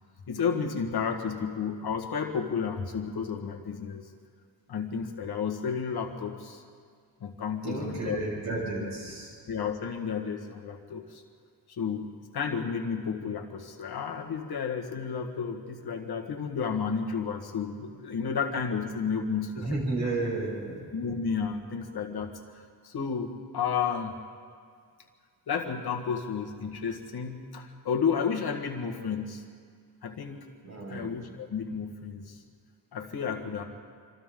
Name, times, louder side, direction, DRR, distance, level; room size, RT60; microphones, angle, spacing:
voice 1, 0.3-4.0 4.7-6.6 7.2-8.2 8.8-8.9 9.5-11.2 11.7-19.8 20.9-22.4 22.8-24.2 25.5-29.4 30.0-30.5 30.9-32.4 32.9-33.6, left 6 dB, 65° left, 2 dB, 1.7 m, -32 dB
voice 2, 7.6-9.3 19.5-20.8 30.6-31.1, right 2 dB, 40° right, -4 dB, 6.9 m, -32 dB
26.0 x 26.0 x 3.8 m, 2.1 s
wide cardioid pair, 175°, 41 cm